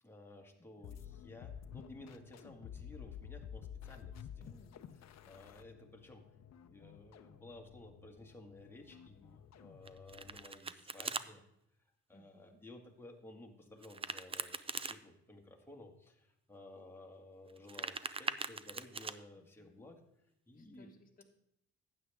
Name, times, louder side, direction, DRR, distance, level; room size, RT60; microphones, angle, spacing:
voice 1, 0.0-4.6 4.9-6.2 6.6-11.4 12.1-20.0 20.5-20.9, left 1 dB, 10° left, 1 dB, 1.8 m, -55 dB
sound 1, 0.8-10.5, left 8 dB, 60° left, 0.7 m, -52 dB
voice 2, 4.4-4.8 12.1-12.6 19.4-19.9 20.5-21.2, left 1 dB, 30° left, 0 dB, 1.4 m, -62 dB
Domestic sounds home sounds, 9.9-11.3 13.8-15.0 17.5-19.1, right 4 dB, 20° right, 0.5 m, -41 dB
12.0 x 8.9 x 3.6 m, 0.78 s
cardioid pair, 90°, 30 cm